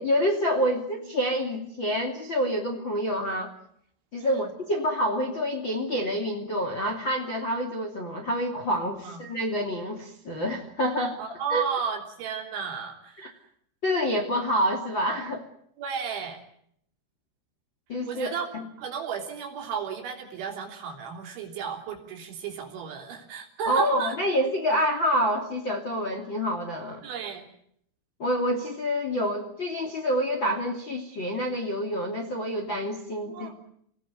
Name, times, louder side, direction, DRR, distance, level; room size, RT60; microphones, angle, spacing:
voice 1, 0.0-3.5 4.1-11.6 13.2-13.3 13.8-15.4 17.9-18.6 23.7-27.0 28.2-33.5, equal, 30° left, 4 dB, 2.8 m, -27 dB
voice 2, 4.2-4.5 8.9-9.2 11.2-13.3 15.8-16.4 18.1-18.5 18.8-24.1 27.0-27.4 33.3-33.5, right 6 dB, 90° right, 1 dB, 5.7 m, -33 dB
27.5 x 18.5 x 9.6 m, 0.71 s
omnidirectional pair, 5.2 m